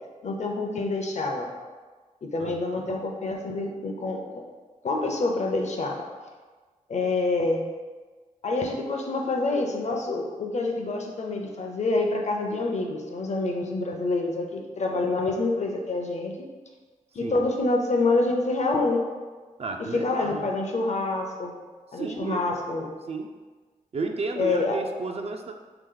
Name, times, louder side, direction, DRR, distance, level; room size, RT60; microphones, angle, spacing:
voice 1, 0.2-1.5 2.2-4.2 4.8-6.0 6.9-7.7 8.4-16.5 17.1-19.0 19.9-21.5 21.9-22.9 24.4-24.8, left 2 dB, 55° left, 2 dB, 0.6 m, -27 dB
voice 2, 2.4-2.9 17.2-17.4 19.6-20.5 21.9-22.4 23.1-23.3 23.9-25.5, right 3 dB, 45° right, 4 dB, 0.4 m, -32 dB
3.0 x 2.9 x 3.8 m, 1.4 s
cardioid pair, 55°, 14 cm